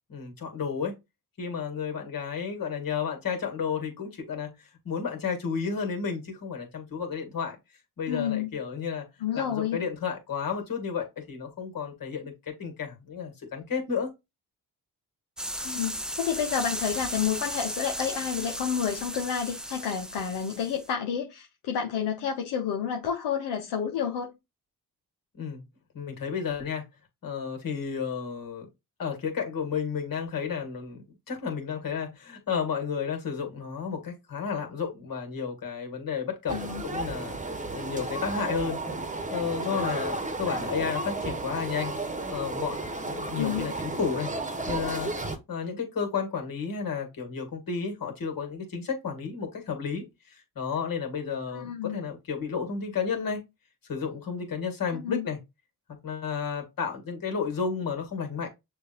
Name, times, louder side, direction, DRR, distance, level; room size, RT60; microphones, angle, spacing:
voice 1, 0.1-0.9 1.4-7.6 8.0-9.1 9.3-14.1 25.4-25.6 25.9-26.8 27.2-28.7 29.0-36.6 36.8-38.8 39.3-42.0 42.3-44.3 44.7-45.1 45.5-53.4 53.9-55.4 56.0-58.5, left 6 dB, 55° left, 2.2 m, -32 dB
voice 2, 8.1-8.5 9.2-9.8 15.6-24.3 36.5-36.8 43.3-43.7 51.5-52.0 54.9-55.3, left 8 dB, 70° left, 1.0 m, -30 dB
sound 1, 15.4-20.9, equal, ahead, 0.5 m, -35 dB
sound 2, 36.5-45.4, right 2 dB, 20° right, 1.2 m, -33 dB
6.6 x 2.6 x 2.9 m
hypercardioid pair, 45°, 42 cm